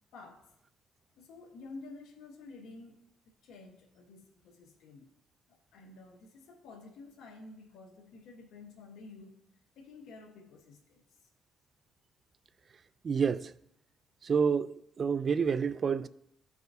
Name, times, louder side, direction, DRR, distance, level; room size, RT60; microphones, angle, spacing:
voice 1, 0.1-0.4 1.2-3.0 3.3-5.1 5.5-9.4 9.7-11.3, left 3 dB, 85° left, 1.2 m, -51 dB
voice 2, 13.0-13.5 14.2-16.1, right 6 dB, 45° right, 0.3 m, -28 dB
14.0 x 4.8 x 2.7 m
cardioid pair, 90°, 0 cm